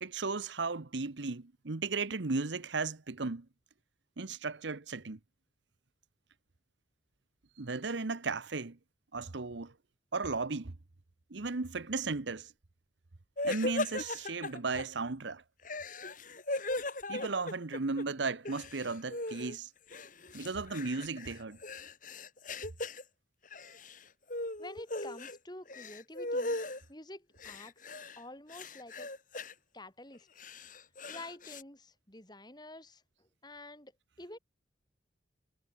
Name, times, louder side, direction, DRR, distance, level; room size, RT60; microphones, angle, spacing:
voice 1, 0.0-3.5 4.2-5.2 7.6-8.8 9.1-9.7 10.1-10.7 11.3-12.5 13.4-15.4 17.1-19.7 20.3-21.6, right 3 dB, 75° right, 1.0 m, -35 dB
sound 1, 13.4-14.8 15.6-18.0 18.3-19.6 19.9-23.0 23.5-24.0 24.3-25.4 25.7-26.8 27.4-28.2 28.5-29.5 30.1-31.6, left 2 dB, 45° left, 5.8 m, -38 dB
voice 2, 24.6-26.6 26.9-29.1 29.7-30.3 31.1-33.9 34.2-34.4, left 1 dB, 20° left, 5.9 m, -49 dB
head